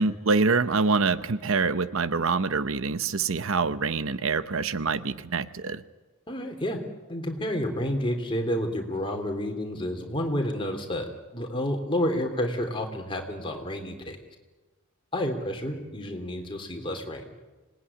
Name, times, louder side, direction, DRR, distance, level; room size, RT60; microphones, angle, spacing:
voice 1, 0.0-5.8, right 4 dB, 60° right, 14 dB, 0.8 m, -25 dB
voice 2, 6.3-6.8 7.1-14.2 15.1-17.2, left 1 dB, 20° left, 3 dB, 3.2 m, -30 dB
25.5 x 19.5 x 9.9 m, 1.2 s
head